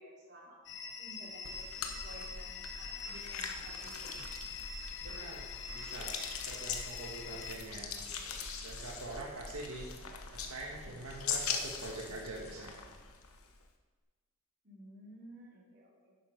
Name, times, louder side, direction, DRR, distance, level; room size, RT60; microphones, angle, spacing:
voice 1, 0.0-4.0 14.6-16.1, right 1 dB, 50° right, -4 dB, 3.1 m, -54 dB
sound 1, 0.7-7.5, left 5 dB, 55° left, 0.9 m, -44 dB
sound 2, 1.4-13.6, left 6 dB, 75° left, 1.0 m, -42 dB
voice 2, 5.0-6.1 6.4-9.9 10.3-12.9, right 2 dB, 85° right, -2 dB, 1.6 m, -45 dB
11.0 x 8.6 x 5.1 m, 1.4 s
head